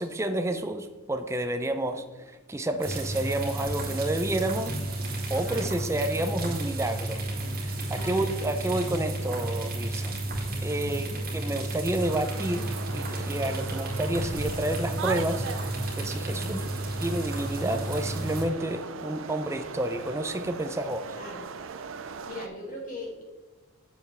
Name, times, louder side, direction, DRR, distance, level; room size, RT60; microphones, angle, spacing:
voice 1, 0.0-2.0 2.5-4.8 5.3-7.2 7.6-10.1 10.6-16.6 17.0-21.1, right 1 dB, 15° right, 8 dB, 0.4 m, -30 dB
sound 1, 2.8-18.4, right 1 dB, 45° right, 2.2 m, -32 dB
voice 2, 5.3-5.7 7.9-8.3 10.9-11.3 16.3-16.7 21.2-21.5 22.2-23.2, left 1 dB, 40° left, -3 dB, 2.3 m, -41 dB
sound 2, 12.0-22.5, right 5 dB, 65° right, 0.5 m, -39 dB
8.0 x 7.1 x 3.3 m, 1.2 s
head